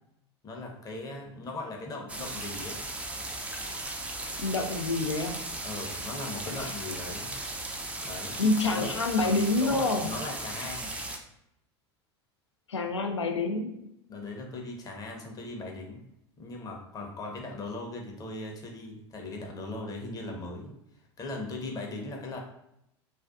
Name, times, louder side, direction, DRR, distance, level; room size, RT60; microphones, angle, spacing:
voice 1, 0.4-2.8 5.6-7.4 8.0-8.4 8.7-8.9 9.2-9.3 9.6-10.9 14.1-16.0 16.4-22.4, left 2 dB, 25° left, 1 dB, 0.7 m, -39 dB
sound 1, 2.1-11.2, right 2 dB, 10° right, 0.3 m, -37 dB
voice 2, 4.4-5.4 6.6-6.8 8.4-10.1 12.7-13.8, left 3 dB, 80° left, 4 dB, 0.4 m, -27 dB
2.5 x 2.3 x 2.3 m, 0.80 s
figure-of-eight pair, 80°, 15 cm